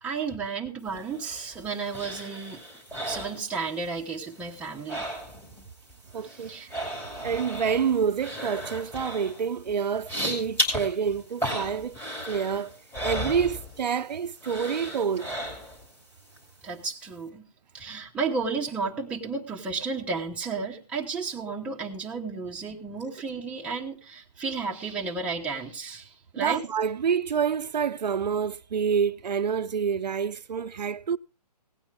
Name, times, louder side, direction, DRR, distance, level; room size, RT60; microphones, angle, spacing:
voice 1, 0.0-2.6 3.0-5.0 6.2-6.7 16.6-17.4 17.7-26.6, right 4 dB, 5° right, 1.0 m, -33 dB
sound 1, 1.0-4.0 4.3-5.6 5.9-14.1 14.4-15.9 16.3-16.4, equal, 10° left, 2.6 m, -35 dB
voice 2, 6.1-6.8 7.2-12.0 12.3-12.8 13.0-15.3 26.4-31.2, right 7 dB, 85° right, 0.6 m, -28 dB
17.0 x 8.8 x 3.5 m
hypercardioid pair, 155°, 21 cm